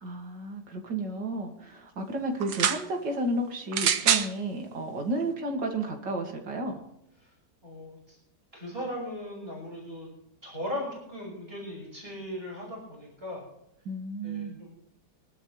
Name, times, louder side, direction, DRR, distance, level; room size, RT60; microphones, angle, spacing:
voice 1, 0.0-6.8 13.8-14.6, right 2 dB, 85° right, 2 dB, 3.0 m, -32 dB
sound 1, 2.4-2.8 3.7-4.3 5.2-5.3, right 8 dB, 70° right, 1.5 m, -25 dB
voice 2, 7.6-8.2 8.5-10.1 10.4-13.4 14.2-14.7, left 1 dB, 35° right, -3 dB, 6.1 m, -38 dB
24.0 x 11.5 x 3.3 m, 0.80 s
omnidirectional pair, 1.8 m